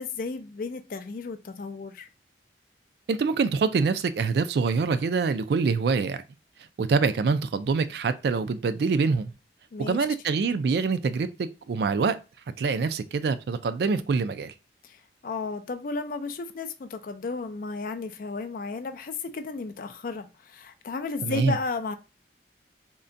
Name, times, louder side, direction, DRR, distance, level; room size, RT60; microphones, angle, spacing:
voice 1, 0.0-2.1 9.7-10.1 14.8-21.9, left 4 dB, 50° left, 0.4 m, -34 dB
voice 2, 3.1-6.2 6.8-9.3 9.8-12.2 12.6-14.5 21.2-21.5, right 4 dB, 60° right, 0.3 m, -25 dB
3.6 x 2.2 x 2.5 m
head